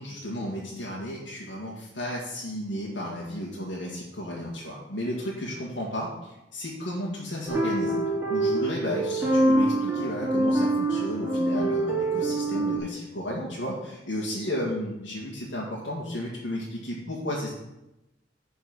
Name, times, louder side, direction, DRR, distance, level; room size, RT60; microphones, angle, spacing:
voice 1, 0.0-8.0 8.3-17.5, equal, 80° left, -4 dB, 2.0 m, -33 dB
sound 1, 7.5-12.8, right 1 dB, 10° right, 2.2 m, -25 dB
10.0 x 4.6 x 6.1 m, 0.92 s
head